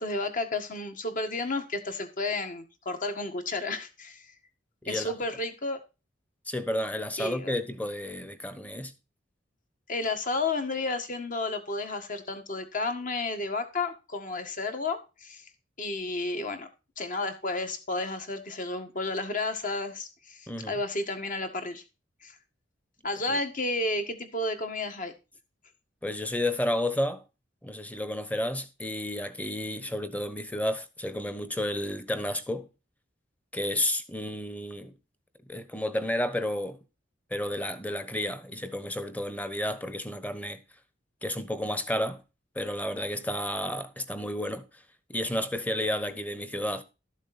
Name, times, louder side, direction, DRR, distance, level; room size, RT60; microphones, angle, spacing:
voice 1, 0.0-4.3 4.9-5.8 7.2-7.5 9.9-15.5 15.8-16.7 17.0-21.8 22.2-22.3 23.0-25.1, left 2 dB, 45° left, 1.7 m, -32 dB
voice 2, 4.8-5.1 6.5-8.9 20.5-20.8 23.3-23.4 26.0-27.2 27.6-32.7 33.5-34.9 35.5-36.8 37.3-40.6 41.2-42.2 42.5-44.7 45.1-46.8, left 1 dB, 10° left, 1.0 m, -31 dB
12.5 x 7.2 x 4.2 m
head